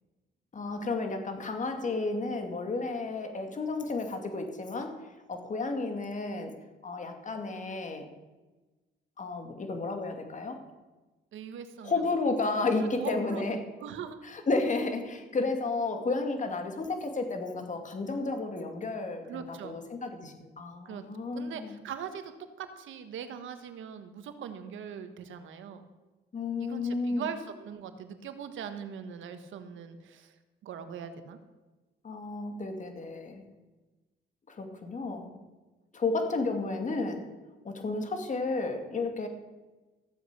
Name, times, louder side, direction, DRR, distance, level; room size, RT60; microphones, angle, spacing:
voice 1, 0.5-5.0 5.3-6.5 6.8-8.1 9.2-10.6 11.8-13.6 14.2-21.8 26.3-27.3 32.0-33.4 34.5-35.3 35.9-37.2 37.6-39.3, left 3 dB, 40° left, 5 dB, 2.3 m, -32 dB
voice 2, 11.3-11.9 13.0-14.2 19.3-19.8 20.8-21.0 21.3-22.3 22.6-25.9 26.6-30.3 30.6-31.4, right 7 dB, 75° right, 9 dB, 1.4 m, -41 dB
14.5 x 8.0 x 6.8 m, 1.2 s
cardioid pair, 90°, 20 cm